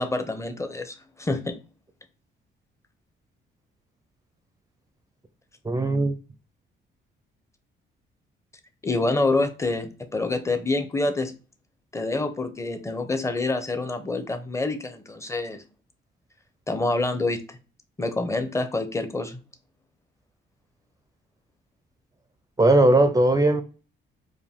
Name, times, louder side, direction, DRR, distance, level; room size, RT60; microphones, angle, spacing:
voice 1, 0.0-1.6 8.8-11.3 11.9-15.6 16.7-17.6 18.0-19.4, left 2 dB, 15° left, 0.7 m, -27 dB
voice 2, 5.6-6.2 22.6-23.6, right 2 dB, 15° right, 0.5 m, -18 dB
4.7 x 2.2 x 3.5 m
cardioid pair, 90°, 20 cm